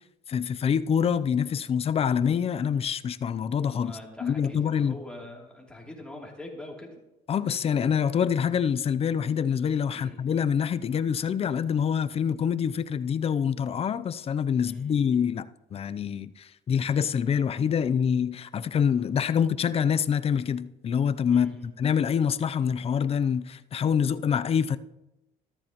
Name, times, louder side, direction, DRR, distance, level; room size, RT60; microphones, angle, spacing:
voice 1, 0.3-5.0 7.3-24.8, left 7 dB, 35° left, 0.5 m, -26 dB
voice 2, 3.8-6.9 9.9-10.2 14.6-15.0 21.3-21.7, left 1 dB, 5° left, 2.9 m, -43 dB
13.5 x 13.0 x 3.0 m
cardioid pair, 110°, 17 cm